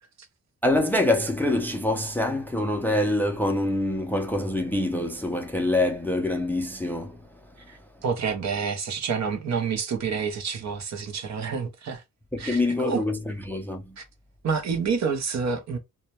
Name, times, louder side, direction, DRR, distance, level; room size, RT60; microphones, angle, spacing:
voice 1, 0.6-7.2 12.4-14.0, left 1 dB, 5° left, 0.3 m, -25 dB
voice 2, 7.7-12.0 12.4-13.0 14.0-14.1 14.4-15.8, right 5 dB, 60° right, 0.6 m, -28 dB
2.1 x 2.1 x 2.8 m
cardioid pair, 105°, 32 cm